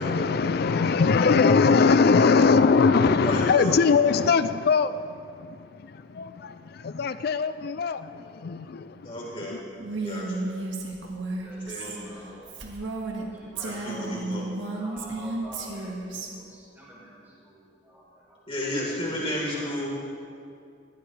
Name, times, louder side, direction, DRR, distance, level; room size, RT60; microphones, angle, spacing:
voice 1, 0.0-9.6, left 5 dB, 50° left, 0.4 m, -22 dB
voice 2, 2.9-3.7 9.0-9.6 9.9-10.4 11.6-12.2 13.6-14.5 18.5-19.9, equal, 30° left, 4.2 m, -32 dB
Female speech woman speaking, 9.8-13.2 13.6-16.3, right 2 dB, 65° right, 1.9 m, -33 dB
voice 3, 11.3-12.6 13.2-18.5 19.1-19.9, right 1 dB, 10° right, 4.8 m, -47 dB
21.0 x 16.0 x 3.4 m
head